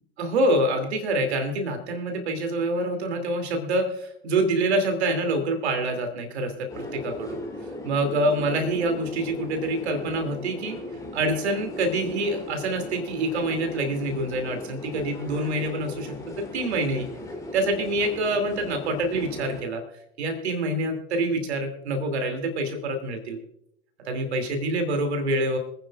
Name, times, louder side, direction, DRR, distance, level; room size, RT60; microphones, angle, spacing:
voice 1, 0.2-7.4 7.8-10.8 11.1-17.1 17.5-19.8 20.2-23.4 24.1-25.6, right 1 dB, 75° right, 5 dB, 2.7 m, -26 dB
sound 1, 6.7-19.6, left 1 dB, 10° left, 3.1 m, -37 dB
26.0 x 9.7 x 2.4 m, 0.76 s
hypercardioid pair, 80°, 33 cm